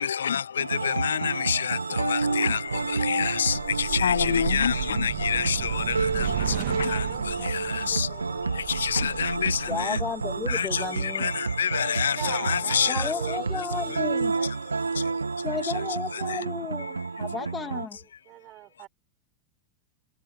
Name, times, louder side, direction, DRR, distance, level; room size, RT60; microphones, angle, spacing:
voice 1, 0.0-10.0 10.5-13.6 14.9-15.2 15.6-15.7 16.1-16.4 16.9-17.1, left 7 dB, 70° left, 0.3 m, -28 dB
sound 1, 0.6-17.9, right 4 dB, 80° right, 1.4 m, -30 dB
sound 2, 2.7-11.0, right 15 dB, 55° right, 2.4 m, -35 dB
voice 2, 6.8-8.7 12.1-13.8 14.1-15.3 17.6-17.8 18.3-18.9, right 16 dB, 35° right, 6.5 m, -43 dB
voice 3, 9.7-11.3 12.9-14.3 15.4-18.0, left 5 dB, 15° left, 2.2 m, -33 dB
figure-of-eight pair, 90°, 0 cm